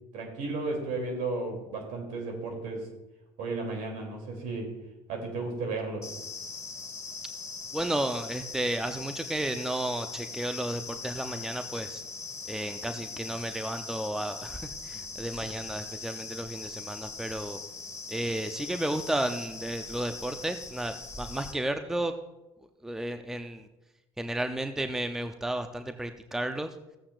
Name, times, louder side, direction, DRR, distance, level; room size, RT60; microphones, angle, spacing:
voice 1, 0.1-2.9 3.4-4.7 5.1-6.1, right 3 dB, 65° right, 2 dB, 2.9 m, -34 dB
sound 1, 6.0-21.5, left 4 dB, 20° left, 1.6 m, -41 dB
voice 2, 7.7-12.0 12.5-17.6 18.1-22.1 22.8-23.7 24.2-26.8, right 1 dB, 5° right, 8 dB, 0.6 m, -33 dB
15.0 x 8.5 x 2.5 m, 0.99 s
hypercardioid pair, 70°, 14 cm